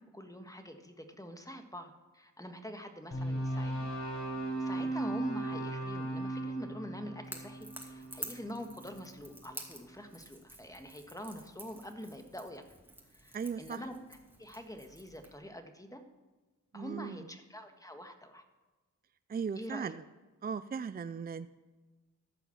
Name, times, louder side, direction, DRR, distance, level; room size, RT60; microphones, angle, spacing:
voice 1, 0.1-3.9 4.6-12.6 13.1-16.0 16.7-18.4 19.5-19.9, equal, 10° left, 6 dB, 1.6 m, -45 dB
sound 1, 3.1-9.3, right 1 dB, 45° left, 4.8 m, -37 dB
Crackle / Crack, 7.2-15.4, right 1 dB, 5° right, 2.3 m, -50 dB
voice 2, 13.3-13.8 16.7-17.2 19.3-20.0 20.4-21.5, right 6 dB, 30° right, 13 dB, 0.4 m, -37 dB
14.0 x 5.8 x 7.2 m, 1.2 s
cardioid pair, 55°, 32 cm